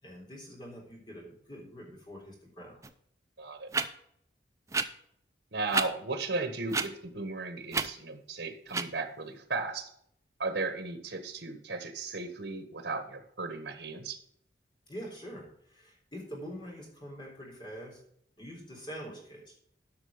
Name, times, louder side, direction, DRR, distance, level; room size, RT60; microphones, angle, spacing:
voice 1, 0.0-2.8 14.9-18.0 18.4-19.5, equal, 25° left, -2 dB, 3.7 m, -45 dB
sound 1, 2.8-2.9 3.7-3.8 4.7-4.8 5.7-5.9 6.7-6.9 7.7-7.9 8.7-8.8, right 4 dB, 15° right, 0.5 m, -29 dB
voice 2, 3.4-3.7 5.5-9.9 10.4-14.2, right 3 dB, 80° right, 8 dB, 1.4 m, -35 dB
12.0 x 5.8 x 5.1 m, 0.68 s
head